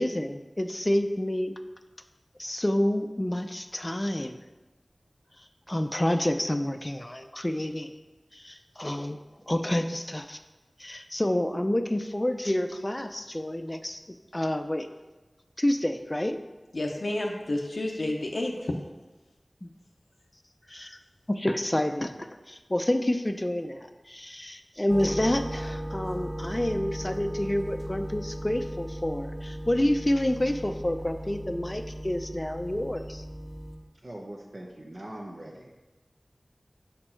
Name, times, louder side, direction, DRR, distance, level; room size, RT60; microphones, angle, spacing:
voice 1, 0.0-1.5 2.4-4.4 5.7-7.9 8.3-9.2 9.5-10.4 10.8-14.0 14.3-14.9 15.6-16.4 19.6-19.7 20.7-21.0 21.3-33.2, left 1 dB, 30° left, 7 dB, 0.4 m, -28 dB
voice 2, 16.7-18.7, left 1 dB, 75° left, 0 dB, 0.5 m, -30 dB
sound 1, 24.9-33.8, equal, 10° right, 0.9 m, -37 dB
voice 3, 34.0-35.8, right 1 dB, 55° right, -1 dB, 0.8 m, -42 dB
5.3 x 4.3 x 4.4 m, 1.1 s
wide cardioid pair, 40°, 0 cm